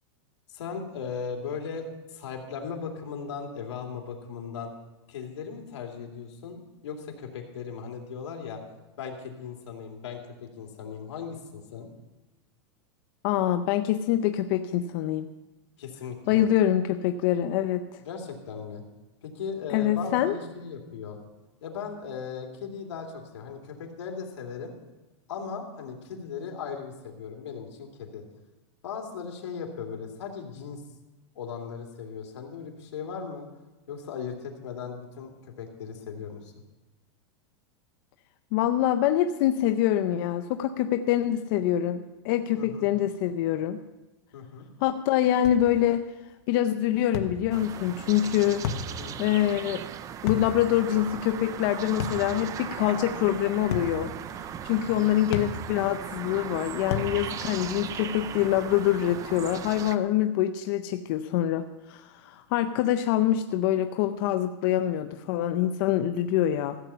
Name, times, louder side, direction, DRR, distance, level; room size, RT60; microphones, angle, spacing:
voice 1, 0.5-4.7 5.1-8.6 9.0-11.9 15.8-16.4 18.0-18.8 19.2-21.2 21.6-24.7 25.3-28.2 28.8-30.8 31.4-33.5 33.9-36.5 42.6-42.9 44.3-44.7 49.0-49.1 54.8-55.1, left 6 dB, 85° left, 2 dB, 2.5 m, -37 dB
voice 2, 13.2-15.3 16.3-17.9 19.7-20.3 38.5-43.8 44.8-46.0 46.5-48.6 49.2-49.8 50.2-54.1 54.6-66.8, left 12 dB, 50° left, 8 dB, 0.6 m, -25 dB
sound 1, 45.4-45.7 47.1-47.4 48.6-48.9 50.3-50.5 52.0-52.3 53.7-54.0 55.3-55.6 56.9-57.2, left 7 dB, 70° left, 1.3 m, -30 dB
sound 2, 47.5-60.0, right 9 dB, 25° right, 0.5 m, -38 dB
15.0 x 8.3 x 5.6 m, 1.1 s
supercardioid pair, 150°, 14 cm